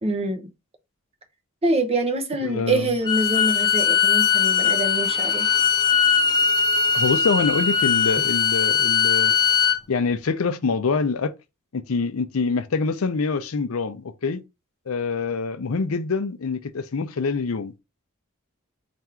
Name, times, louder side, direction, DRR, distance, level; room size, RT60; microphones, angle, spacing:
voice 1, 0.0-0.5 1.6-5.5, right 2 dB, 30° right, 0.7 m, -25 dB
voice 2, 2.4-2.9 6.9-9.3 9.9-11.3 11.7-14.4 14.9-17.7, left 4 dB, 75° left, 0.5 m, -25 dB
Bowed string instrument, 3.0-9.8, left 6 dB, 20° left, 0.4 m, -20 dB
3.5 x 2.5 x 4.4 m
head